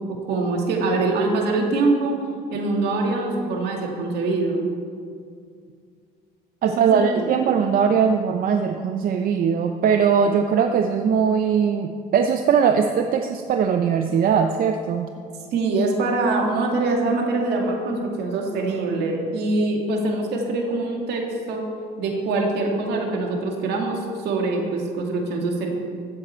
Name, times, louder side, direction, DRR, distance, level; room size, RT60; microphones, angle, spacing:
voice 1, 0.1-2.2 2.5-4.7 6.6-7.2 15.5-21.6 22.0-25.7, right 3 dB, 75° right, 1 dB, 2.2 m, -24 dB
voice 2, 6.6-15.1, right 7 dB, 60° right, 6 dB, 0.6 m, -20 dB
15.0 x 7.7 x 4.4 m, 2.2 s
cardioid pair, 110°, 17 cm